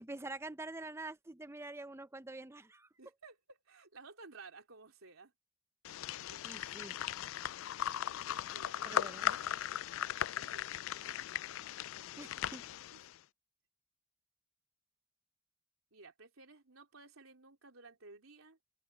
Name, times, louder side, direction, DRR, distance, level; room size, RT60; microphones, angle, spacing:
voice 1, 0.0-2.9 6.4-6.9 8.8-9.5 12.2-12.6, right 2 dB, 10° right, 0.5 m, -46 dB
voice 2, 3.0-5.3 6.3-6.4 8.3-9.5 10.4-11.2 12.9-13.0 15.9-18.6, right 3 dB, 85° right, 3.5 m, -56 dB
sound 1, 5.8-13.1, left 11 dB, 75° left, 0.3 m, -38 dB
open air
head